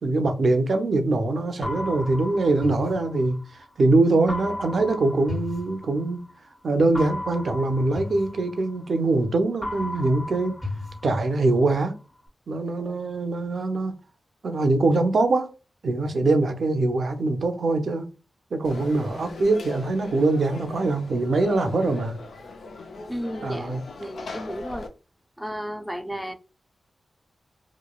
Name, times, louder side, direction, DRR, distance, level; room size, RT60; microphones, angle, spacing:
voice 1, 0.0-3.4 3.8-6.3 6.6-10.6 11.0-11.9 12.5-14.0 14.4-15.5 15.8-18.1 18.5-22.2 23.4-23.8, right 2 dB, 70° right, 0.5 m, -23 dB
sound 1, 1.6-3.7 4.3-6.4 6.9-9.2 9.6-11.7, left 1 dB, 40° left, 1.3 m, -35 dB
Conversation / Crowd, 18.6-24.9, left 3 dB, 80° left, 0.4 m, -40 dB
voice 2, 23.1-24.9 25.4-26.3, equal, 5° right, 0.4 m, -33 dB
3.0 x 2.2 x 2.2 m
cardioid pair, 45°, 0 cm